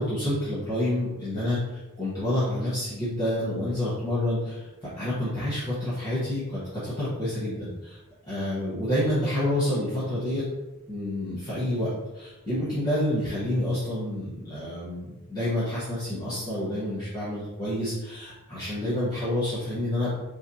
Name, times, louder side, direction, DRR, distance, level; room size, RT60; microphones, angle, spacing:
voice 1, 0.0-4.7 5.0-8.0 8.3-10.4 10.9-20.1, left 1 dB, 20° left, -11 dB, 1.1 m, -28 dB
4.9 x 3.2 x 2.7 m, 1.0 s
head